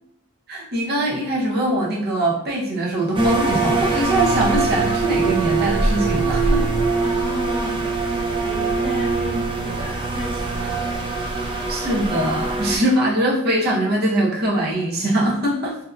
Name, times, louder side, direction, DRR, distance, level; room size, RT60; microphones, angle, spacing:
voice 1, 0.5-6.6 11.7-15.8, right 1 dB, 50° right, -3 dB, 0.8 m, -22 dB
sound 1, 3.1-12.8, right 3 dB, 25° right, 0.3 m, -22 dB
voice 2, 7.0-7.8 8.4-11.0, left 1 dB, 25° left, -4 dB, 0.9 m, -32 dB
3.5 x 2.8 x 2.3 m, 0.72 s
head